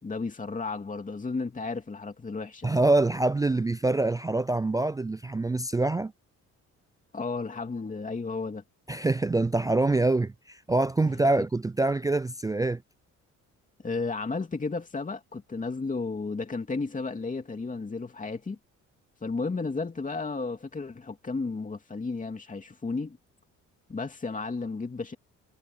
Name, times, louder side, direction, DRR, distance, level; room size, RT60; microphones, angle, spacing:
voice 1, 0.0-2.8 7.1-8.6 11.3-11.4 13.8-18.6 19.2-23.2 23.9-25.1, left 4 dB, 25° left, 2.7 m, -33 dB
voice 2, 2.6-6.1 8.9-12.8, right 2 dB, 10° right, 0.3 m, -25 dB
cardioid pair, 90°, 30 cm